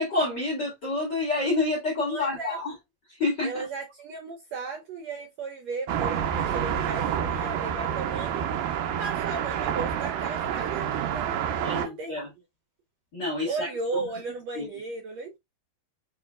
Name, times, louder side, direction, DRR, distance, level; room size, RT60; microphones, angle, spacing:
voice 1, 0.0-2.7 3.2-3.7 11.6-12.3 13.1-14.0 14.5-14.7, left 2 dB, 45° left, 1.5 m, -28 dB
voice 2, 2.1-2.6 3.4-8.7 9.0-11.3 11.7-12.1 13.4-15.4, right 3 dB, 70° right, 1.7 m, -35 dB
sound 1, 5.9-11.9, right 9 dB, 90° right, 2.6 m, -28 dB
6.7 x 3.1 x 2.2 m
omnidirectional pair, 4.1 m